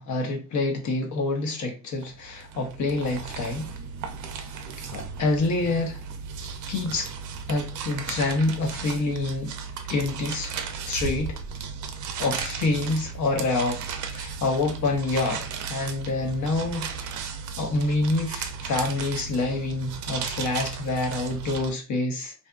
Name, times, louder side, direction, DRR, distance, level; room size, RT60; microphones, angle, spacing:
voice 1, 0.0-3.7 4.8-6.0 6.7-7.1 7.5-9.5 9.9-10.5 10.9-11.4 12.2-13.8 14.1-16.9 17.6-22.3, left 2 dB, 75° left, 3 dB, 0.9 m, -27 dB
sound 1, 2.0-21.7, right 6 dB, 80° right, 0.5 m, -35 dB
2.7 x 2.5 x 2.2 m, 0.30 s
cardioid pair, 90°, 30 cm